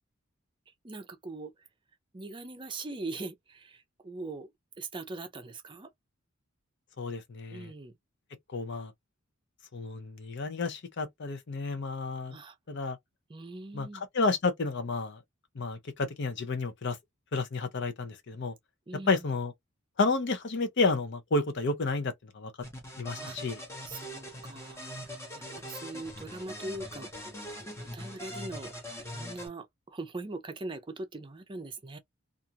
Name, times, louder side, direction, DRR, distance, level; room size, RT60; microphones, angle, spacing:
voice 1, 0.8-1.5 2.1-4.5 4.8-5.9 7.5-7.9 12.3-12.6 13.3-14.0 18.9-19.3 23.2-23.4 23.8-24.9 25.3-27.3 27.8-28.7 29.0-32.0, right 2 dB, 25° right, 0.5 m, -41 dB
voice 2, 7.0-7.7 8.5-8.9 9.7-12.4 12.7-13.0 13.7-15.2 15.6-17.0 17.3-18.5 19.1-19.5 20.0-22.5 23.0-23.6, left 3 dB, 55° left, 0.6 m, -31 dB
sound 1, 22.6-29.5, equal, 15° left, 0.8 m, -42 dB
2.5 x 2.4 x 2.8 m
head